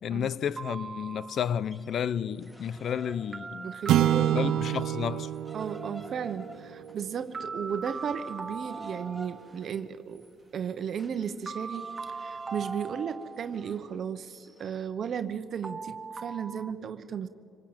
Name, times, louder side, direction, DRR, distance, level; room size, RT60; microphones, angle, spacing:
voice 1, 0.0-3.7 4.2-5.3, left 8 dB, 65° left, 0.7 m, -32 dB
sound 1, 0.6-1.7 3.3-5.6 7.3-9.7 11.5-13.8 15.6-16.7, right 4 dB, 30° right, 0.8 m, -40 dB
sound 2, 1.6-4.3 4.6-14.9, right 1 dB, 10° left, 4.2 m, -50 dB
voice 2, 3.6-4.6 5.5-10.3 10.5-17.3, right 7 dB, 60° right, 1.0 m, -35 dB
sound 3, 3.9-8.3, right 12 dB, 85° right, 0.6 m, -29 dB
25.5 x 19.5 x 8.8 m
cardioid pair, 90°, 0 cm